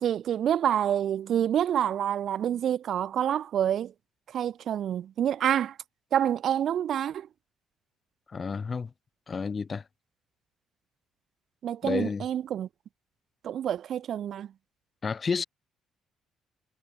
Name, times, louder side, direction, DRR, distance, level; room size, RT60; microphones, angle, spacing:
voice 1, 0.0-3.9 4.3-5.8 6.1-7.3 11.6-12.7 13.4-14.5, right 10 dB, 60° right, 0.8 m, -27 dB
voice 2, 8.3-8.9 9.3-9.8 11.8-12.2 15.0-15.4, left 5 dB, 35° left, 0.4 m, -30 dB
cardioid pair, 95°, 0 cm